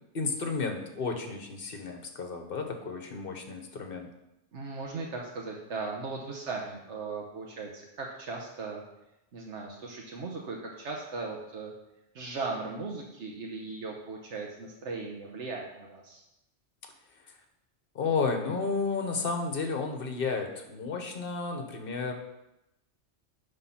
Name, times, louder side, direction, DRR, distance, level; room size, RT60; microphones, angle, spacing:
voice 1, 0.1-4.1 17.2-17.4 17.9-22.1, left 4 dB, 55° left, 4 dB, 1.2 m, -32 dB
voice 2, 4.5-8.8 9.3-11.7 12.1-16.2, right 4 dB, 85° right, -1 dB, 1.2 m, -38 dB
9.8 x 3.6 x 5.7 m, 0.89 s
omnidirectional pair, 1.2 m